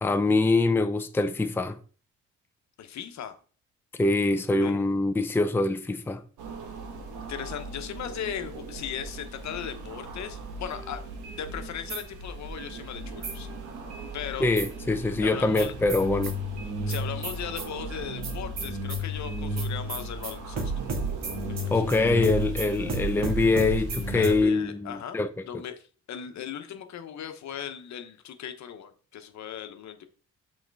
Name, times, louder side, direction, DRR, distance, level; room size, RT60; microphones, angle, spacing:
voice 1, 0.0-1.8 4.0-6.2 14.4-16.3 21.7-25.4, left 3 dB, 5° left, 0.5 m, -24 dB
voice 2, 2.8-3.3 4.6-4.8 7.3-11.0 11.4-13.5 14.1-14.5 15.2-15.7 16.8-20.7 21.5-21.7 24.1-25.2 25.4-30.1, left 9 dB, 65° left, 1.1 m, -37 dB
sound 1, 6.4-24.5, right 2 dB, 85° right, 1.3 m, -39 dB
sound 2, 10.7-12.8 13.2-14.8 15.2-24.3, right 1 dB, 60° right, 2.0 m, -33 dB
6.4 x 4.4 x 4.7 m
cardioid pair, 90°, 30 cm